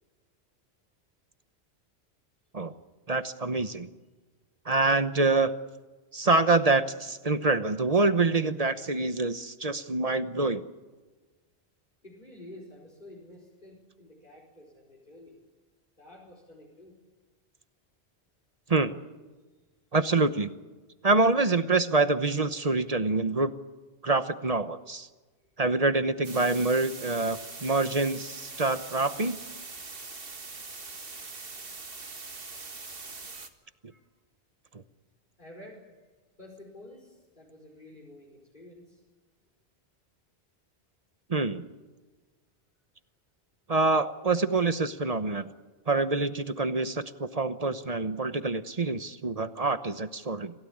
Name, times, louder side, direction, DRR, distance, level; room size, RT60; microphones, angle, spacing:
voice 1, 3.1-3.9 4.7-5.5 6.1-10.6 18.7-19.0 19.9-20.5 21.0-23.5 24.0-25.1 25.6-29.4 41.3-41.6 43.7-45.5 45.9-50.5, right 3 dB, 35° right, 11 dB, 1.1 m, -26 dB
voice 2, 12.0-15.4 16.0-17.0 25.4-25.5 32.1-32.2 33.6-34.1 35.4-35.8 36.4-39.0, left 1 dB, 45° left, -1 dB, 5.1 m, -50 dB
sound 1, 26.2-33.5, right 3 dB, 60° right, 2.0 m, -42 dB
27.0 x 16.5 x 8.7 m, 1.3 s
omnidirectional pair, 1.1 m